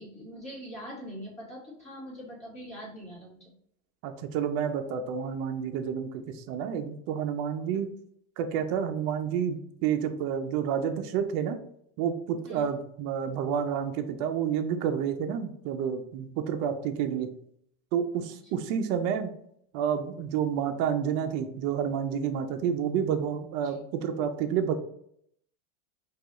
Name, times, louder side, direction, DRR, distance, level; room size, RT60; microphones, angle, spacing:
voice 1, 0.0-3.5 12.4-12.7 23.6-23.8, equal, 15° left, -5 dB, 1.5 m, -43 dB
voice 2, 4.0-7.9 8.4-11.6 12.0-17.3 17.9-19.3 19.7-24.7, right 8 dB, 40° right, 6 dB, 0.4 m, -29 dB
4.7 x 2.4 x 2.9 m, 0.70 s
supercardioid pair, 155°, 45 cm